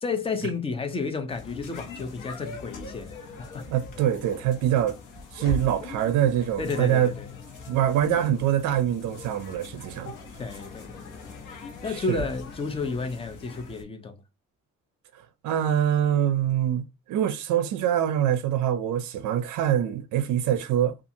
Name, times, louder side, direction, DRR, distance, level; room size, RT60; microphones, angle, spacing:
voice 1, 0.0-3.1 3.4-3.6 6.6-7.3 10.4-11.4 11.8-14.2, left 4 dB, 20° left, 0.4 m, -31 dB
sound 1, 1.3-13.8, left 3 dB, 70° left, 0.8 m, -41 dB
voice 2, 3.7-5.0 5.3-7.1 7.7-10.1 11.9-12.2 15.1-21.0, right 10 dB, 70° right, 0.5 m, -24 dB
2.7 x 2.4 x 2.6 m
cardioid pair, 175°, 32 cm